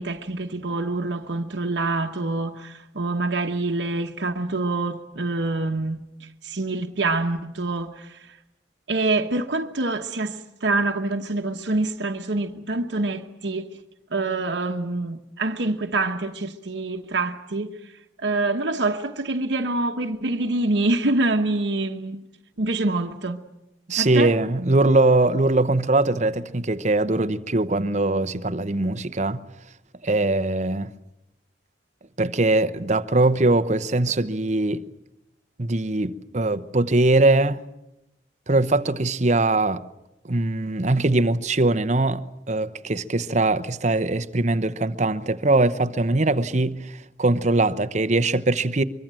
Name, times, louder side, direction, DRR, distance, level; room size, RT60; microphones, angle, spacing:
voice 1, 0.0-8.3 8.9-13.8 14.1-17.7 18.2-22.2 22.6-23.4 24.0-24.3, right 2 dB, 75° right, 1.1 m, -26 dB
voice 2, 23.9-29.5 30.0-30.9 32.2-34.8 35.6-37.6 38.5-39.8 40.3-48.8, right 2 dB, 40° right, 0.9 m, -21 dB
24.0 x 24.0 x 7.7 m
head